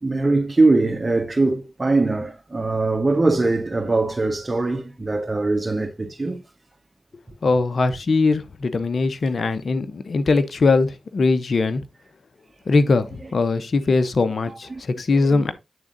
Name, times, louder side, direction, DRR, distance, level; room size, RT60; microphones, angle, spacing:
voice 1, 0.0-6.4 14.7-14.8 15.3-15.4, right 3 dB, 35° right, 1.4 m, -21 dB
voice 2, 7.4-11.8 12.7-15.5, left 3 dB, 65° left, 0.8 m, -21 dB
8.8 x 3.7 x 3.9 m
cardioid pair, 40°, 0 cm